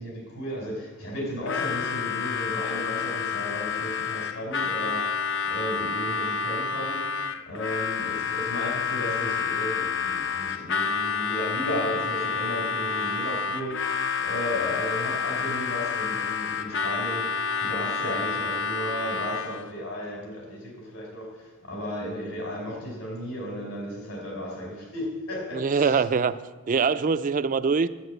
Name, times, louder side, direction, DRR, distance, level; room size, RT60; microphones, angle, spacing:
voice 1, 0.0-26.0, left 1 dB, 75° left, 4.9 m, -34 dB
Harmonica, 1.4-19.7, left 5 dB, 55° left, 0.6 m, -29 dB
voice 2, 25.5-26.3 26.7-27.9, right 5 dB, 35° right, 0.3 m, -23 dB
11.5 x 8.4 x 7.9 m
head